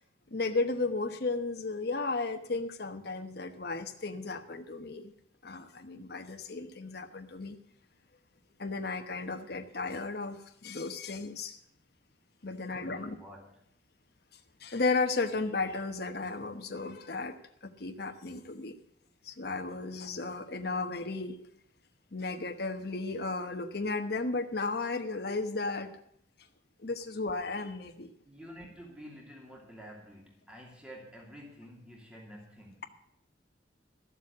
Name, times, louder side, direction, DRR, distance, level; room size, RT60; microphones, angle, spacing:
voice 1, 0.3-5.1 5.4-7.6 8.6-11.6 12.4-13.2 14.6-17.4 17.6-18.7 19.2-21.4 22.1-25.9 26.8-28.1, left 3 dB, 60° left, 5 dB, 1.1 m, -34 dB
voice 2, 12.8-13.6 28.2-32.8, equal, 5° right, -2 dB, 2.7 m, -49 dB
13.5 x 7.3 x 8.4 m, 0.70 s
head